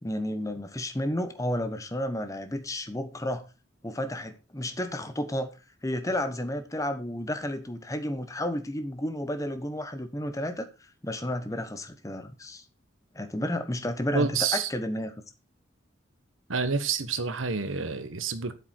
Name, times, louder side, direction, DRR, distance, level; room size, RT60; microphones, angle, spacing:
voice 1, 0.0-3.5 3.8-5.5 5.8-10.7 11.0-12.6 13.1-15.1, left 1 dB, 15° left, 1.1 m, -32 dB
voice 2, 14.1-14.7 16.5-18.6, right 5 dB, 90° right, 1.2 m, -28 dB
8.4 x 7.1 x 4.4 m
head